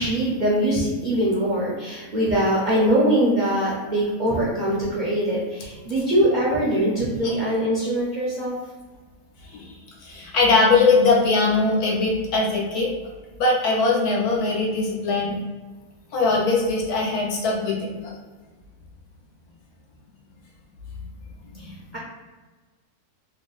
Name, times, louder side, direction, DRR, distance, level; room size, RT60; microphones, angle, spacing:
voice 1, 0.0-8.6 21.6-22.0, right 1 dB, 55° right, -7 dB, 0.5 m, -22 dB
voice 2, 9.4-9.7 10.0-12.9 13.4-15.3 16.1-18.1 21.6-21.7, left 3 dB, 80° left, -3 dB, 1.3 m, -21 dB
3.3 x 2.0 x 3.7 m, 1.3 s
omnidirectional pair, 1.6 m